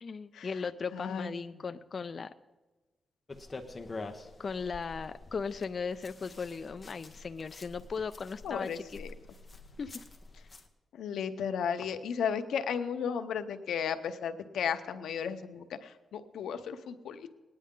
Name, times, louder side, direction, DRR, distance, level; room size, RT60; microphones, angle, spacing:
voice 1, 0.0-2.3 4.4-8.8 9.8-9.9, left 5 dB, 40° left, 10 dB, 0.3 m, -37 dB
voice 2, 0.9-1.3 8.4-9.1 10.9-17.3, left 7 dB, 90° left, 9 dB, 0.8 m, -34 dB
sound 1, 3.3-10.7, left 3 dB, 25° left, 0.9 m, -47 dB
19.5 x 9.8 x 3.7 m, 1.2 s
wide cardioid pair, 145°, 0 cm